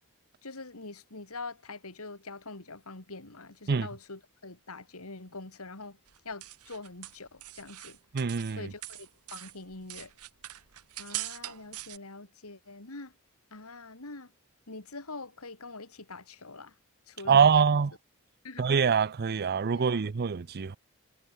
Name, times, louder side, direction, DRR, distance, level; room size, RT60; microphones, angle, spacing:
voice 1, 0.4-6.0 6.2-8.0 8.5-10.1 11.0-13.1 13.5-14.3 14.7-16.7 17.1-17.8 18.4-18.8 19.7-20.0, left 3 dB, 75° left, 2.8 m, -44 dB
sound 1, 6.1-8.6 8.8-12.0, right 15 dB, 90° right, 1.5 m, -42 dB
voice 2, 8.1-8.6 17.3-17.9 18.6-20.8, right 6 dB, 45° right, 0.5 m, -24 dB
head